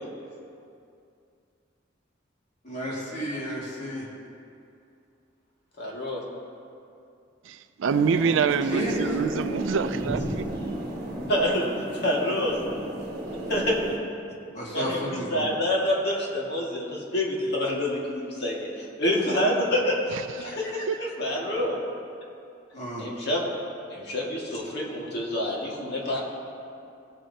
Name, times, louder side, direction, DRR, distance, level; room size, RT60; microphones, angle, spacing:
voice 1, 2.6-4.1 8.7-9.0 9.4-9.6 14.5-15.5 22.7-23.1, equal, 40° left, 2.2 m, -32 dB
voice 2, 5.8-6.2 11.3-11.7 11.9-12.6 13.5-13.8 14.7-21.8 23.0-23.5 23.9-26.2, left 1 dB, 60° left, 1.9 m, -27 dB
voice 3, 7.4-10.5 20.1-20.6 20.9-21.0, right 6 dB, 80° right, 0.4 m, -26 dB
sound 1, 7.9-14.0, right 1 dB, 50° right, 1.4 m, -33 dB
17.0 x 7.8 x 2.8 m
head